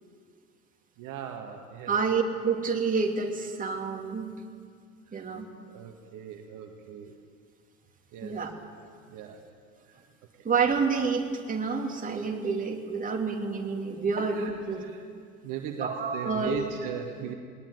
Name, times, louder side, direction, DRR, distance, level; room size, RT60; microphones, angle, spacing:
voice 1, 1.0-2.0 5.1-5.3 5.6-7.1 8.1-8.4 9.1-9.4 9.9-10.0 10.4-10.5 14.2-14.5 14.8-14.9 15.4-17.3, right 8 dB, 45° right, 3 dB, 2.1 m, -38 dB
voice 2, 1.9-4.4 5.1-5.5 8.2-8.5 10.4-14.8 15.8-16.7, right 5 dB, 20° right, 2 dB, 3.0 m, -28 dB
20.0 x 19.0 x 9.5 m, 2.1 s
figure-of-eight pair, 75°, 45 cm